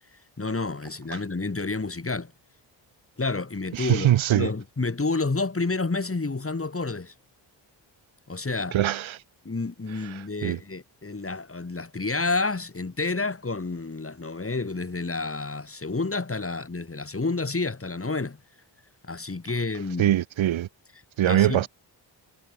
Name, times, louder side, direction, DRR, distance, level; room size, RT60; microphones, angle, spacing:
voice 1, 0.4-2.3 3.2-7.1 8.3-8.8 9.4-18.4 19.1-20.1 21.2-21.6, left 3 dB, 30° left, 5.6 m, -29 dB
voice 2, 3.7-4.5 8.7-9.2 10.4-10.6 20.0-20.7 21.2-21.7, right 12 dB, 75° right, 1.0 m, -22 dB
cardioid pair, 80°, 47 cm